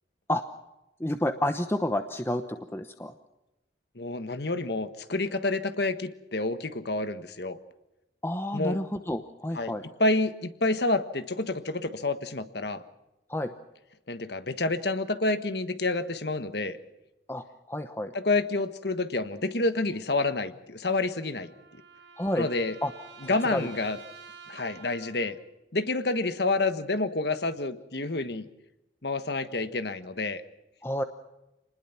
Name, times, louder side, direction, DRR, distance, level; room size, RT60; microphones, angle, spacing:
voice 1, 1.0-3.1 8.2-9.8 13.3-13.5 17.3-18.1 22.2-22.5 22.8-22.9 23.5-23.7 30.8-31.0, left 1 dB, 15° left, 8 dB, 0.9 m, -30 dB
voice 2, 3.9-7.6 8.5-8.8 9.5-9.7 10.0-12.8 14.1-16.8 18.1-21.5 22.4-22.7 23.2-24.0 24.5-25.4 25.7-28.4 29.0-30.4, left 2 dB, 60° left, 11 dB, 1.5 m, -28 dB
sound 1, 20.7-25.5, right 5 dB, 80° right, 6.4 m, -50 dB
27.0 x 20.0 x 5.9 m, 0.93 s
head